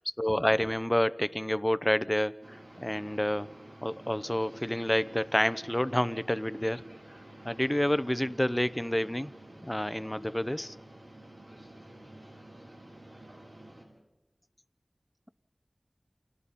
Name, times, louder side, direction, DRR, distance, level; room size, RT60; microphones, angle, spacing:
voice 1, 0.2-3.5 3.8-6.8 7.4-9.3 9.6-10.7, left 1 dB, 15° left, 15 dB, 0.8 m, -29 dB
sound 1, 2.4-13.8, right 1 dB, 80° right, 7.4 m, -50 dB
30.0 x 28.0 x 4.2 m, 1.1 s
wide cardioid pair, 45°, 0 cm